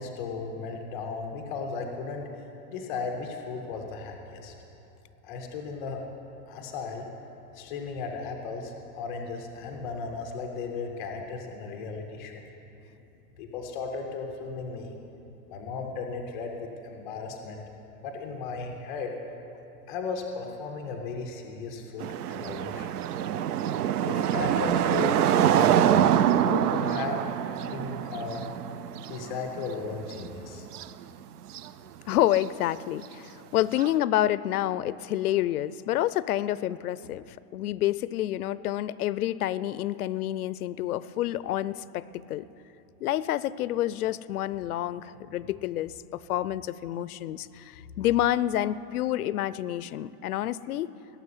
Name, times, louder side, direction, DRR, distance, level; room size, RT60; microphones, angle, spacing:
voice 1, 0.0-2.3 2.7-4.5 5.2-6.0 6.5-7.1 7.5-12.5 13.4-14.9 15.5-17.6 18.0-19.1 19.9-22.9 24.0-27.2 27.6-28.5 29.1-30.6, left 4 dB, 5° left, -1 dB, 0.4 m, -35 dB
sound 1, 22.0-30.3 30.6-31.0 31.5-31.7 32.3-32.4 33.8-33.9, right 10 dB, 80° right, 0.7 m, -25 dB
voice 2, 32.1-42.4 43.0-50.9, left 13 dB, 70° left, 17 dB, 0.6 m, -28 dB
18.0 x 7.3 x 9.8 m, 2.8 s
supercardioid pair, 175°, 46 cm